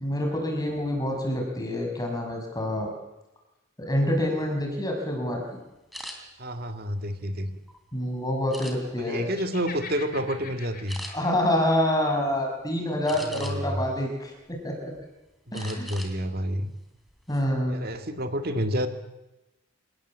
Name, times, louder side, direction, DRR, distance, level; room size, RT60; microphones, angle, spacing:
voice 1, 0.0-2.9 3.8-5.6 7.9-9.3 11.1-14.9 15.5-15.9 17.3-17.8, left 1 dB, 20° left, 2 dB, 6.0 m, -27 dB
sound 1, 5.9-6.2 6.8-7.8 8.5-9.1 9.6-9.9 10.2-10.4 10.9-11.1 13.1-13.8 14.3-15.0 15.5-16.1 16.5-16.7 17.1-17.4, equal, ahead, 3.3 m, -41 dB
voice 2, 6.4-7.5 9.0-11.0 13.2-13.8 15.5-16.7 17.7-18.9, equal, 50° right, 7 dB, 2.3 m, -29 dB
Laughter, 9.3-12.3, left 5 dB, 45° left, 3.9 m, -44 dB
27.5 x 18.5 x 7.7 m, 1.0 s
head